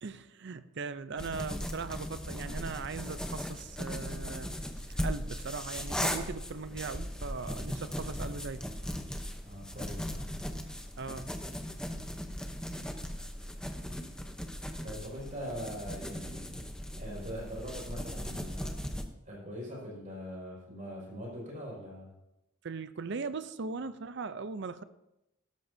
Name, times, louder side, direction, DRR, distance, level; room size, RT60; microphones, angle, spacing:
voice 1, 0.0-8.6 11.0-11.3 22.6-24.8, right 4 dB, 55° right, 13 dB, 0.5 m, -39 dB
sound 1, 1.2-19.0, equal, 5° left, 0.8 m, -38 dB
voice 2, 9.4-10.2 14.8-16.5 17.0-18.8 19.3-22.1, equal, 35° right, -4 dB, 5.6 m, -42 dB
17.0 x 13.0 x 2.7 m, 0.90 s
head